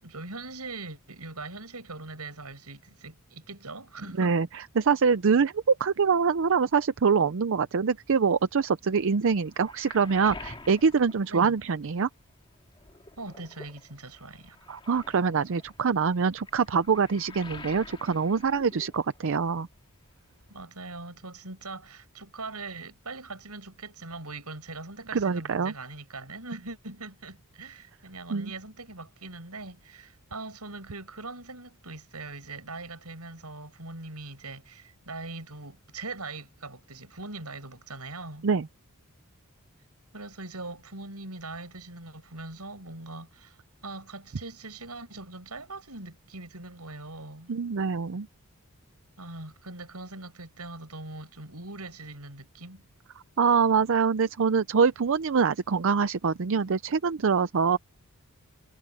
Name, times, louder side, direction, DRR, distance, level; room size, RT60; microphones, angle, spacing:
voice 1, 0.0-4.4 11.3-11.5 13.2-14.6 17.3-17.4 20.5-38.5 40.1-47.5 49.2-52.9, right 3 dB, 90° right, 7.6 m, -41 dB
voice 2, 4.2-12.1 14.7-19.7 25.1-25.7 28.3-28.5 38.4-38.7 47.5-48.3 53.4-57.8, right 5 dB, 60° right, 0.5 m, -24 dB
Waves surf, 9.0-12.2 12.5-19.5 19.7-20.7, left 3 dB, 25° left, 2.2 m, -48 dB
head